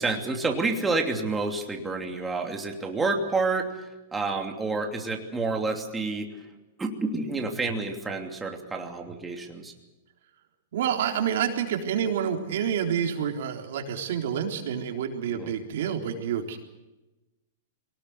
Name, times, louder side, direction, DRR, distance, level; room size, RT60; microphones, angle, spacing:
voice 1, 0.0-6.3 6.8-9.7 15.3-15.5, right 3 dB, 10° right, 2 dB, 2.9 m, -29 dB
voice 2, 10.7-16.6, right 8 dB, 70° right, 3 dB, 3.8 m, -28 dB
23.5 x 19.0 x 8.2 m, 1.1 s
hypercardioid pair, 145°, 0 cm